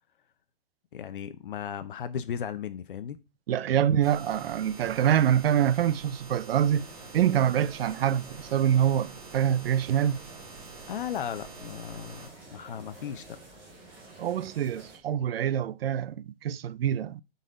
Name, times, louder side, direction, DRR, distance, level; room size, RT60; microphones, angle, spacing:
voice 1, 0.9-3.2 10.9-13.4, left 8 dB, 55° left, 0.7 m, -36 dB
voice 2, 3.5-6.9 7.1-10.2 14.2-17.2, right 10 dB, 70° right, 0.5 m, -25 dB
sound 1, 4.0-12.3, right 4 dB, 35° right, 2.0 m, -47 dB
sound 2, 6.7-15.0, right 2 dB, 5° right, 0.5 m, -50 dB
7.9 x 4.1 x 5.0 m
hypercardioid pair, 175°, 31 cm